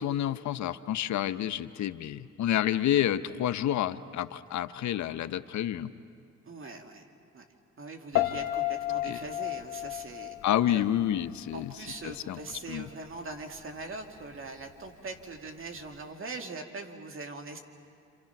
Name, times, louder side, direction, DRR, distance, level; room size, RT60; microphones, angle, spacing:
voice 1, 0.0-5.9 9.0-9.2 10.4-11.7 12.0-12.4 12.7-12.9, left 11 dB, 70° left, 12 dB, 0.8 m, -29 dB
voice 2, 6.5-7.1 7.3-7.4 7.8-10.3 10.7-10.8 11.5-17.6, right 3 dB, 45° right, 4 dB, 2.5 m, -41 dB
Piano, 8.1-11.2 11.5-12.0, left 15 dB, 90° left, 1.3 m, -32 dB
29.0 x 27.5 x 5.9 m, 2.4 s
cardioid pair, 90°, 30 cm